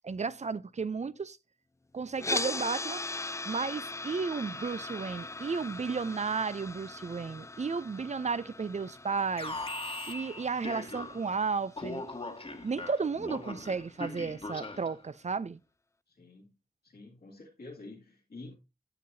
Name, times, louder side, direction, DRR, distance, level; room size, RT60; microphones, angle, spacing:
voice 1, 0.0-1.4 1.9-3.0 3.5-9.6 10.1-12.0 12.6-15.6, right 5 dB, 45° right, 0.5 m, -33 dB
sound 1, 2.2-12.3, left 2 dB, 20° left, 0.4 m, -40 dB
Alarm, 9.4-11.4 11.8-15.0, left 2 dB, 35° left, 1.4 m, -40 dB
voice 2, 16.1-16.5 16.8-18.6, left 2 dB, 75° left, 2.1 m, -48 dB
9.9 x 7.7 x 2.7 m
wide cardioid pair, 55°, 16 cm